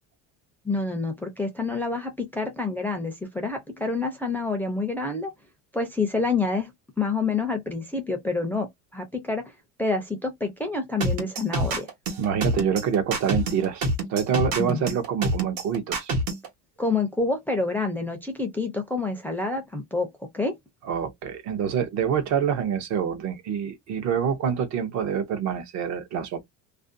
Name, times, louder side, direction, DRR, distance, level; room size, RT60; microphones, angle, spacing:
voice 1, 0.6-5.3 5.7-6.7 7.0-8.7 8.9-9.5 9.8-11.9 14.6-14.8 16.8-20.1 20.3-20.5, left 3 dB, 5° left, 0.4 m, -27 dB
sound 1, 11.0-16.5, right 1 dB, 70° right, 1.1 m, -26 dB
voice 2, 12.2-16.1 20.8-26.5, right 8 dB, 50° right, 0.7 m, -26 dB
2.5 x 2.1 x 2.5 m
cardioid pair, 140°, 35 cm